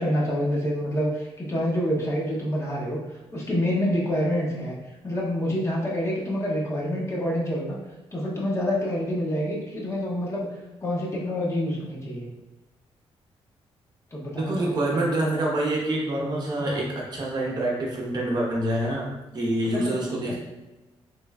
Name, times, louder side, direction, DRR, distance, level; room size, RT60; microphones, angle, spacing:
voice 1, 0.0-3.0 3.3-4.8 5.0-7.8 8.1-10.5 10.8-12.3 14.1-15.1 16.6-16.8 19.7-20.0 20.3-20.4, equal, 25° left, -4 dB, 0.8 m, -27 dB
voice 2, 14.4-19.1 19.3-20.4, right 1 dB, 40° right, -3 dB, 0.8 m, -26 dB
3.2 x 2.9 x 2.3 m, 1.1 s
cardioid pair, 100°, 11 cm